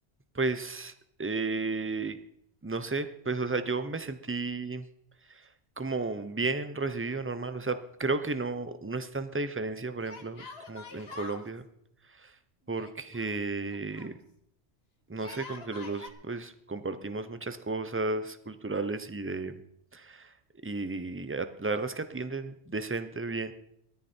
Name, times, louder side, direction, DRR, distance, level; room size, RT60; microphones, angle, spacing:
voice 1, 0.3-0.9 1.2-2.2 2.6-4.8 5.3-5.4 5.8-11.6 12.2-12.3 12.7-14.2 15.1-19.6 19.9-20.3 20.6-23.5, right 3 dB, 15° right, 11 dB, 0.7 m, -33 dB
Yell, 6.8-7.7 7.9-8.0 10.0-11.5 12.7-14.1 15.1-16.1, left 4 dB, 65° left, 1.8 m, -46 dB
17.5 x 13.5 x 4.4 m, 0.74 s
omnidirectional pair, 1.2 m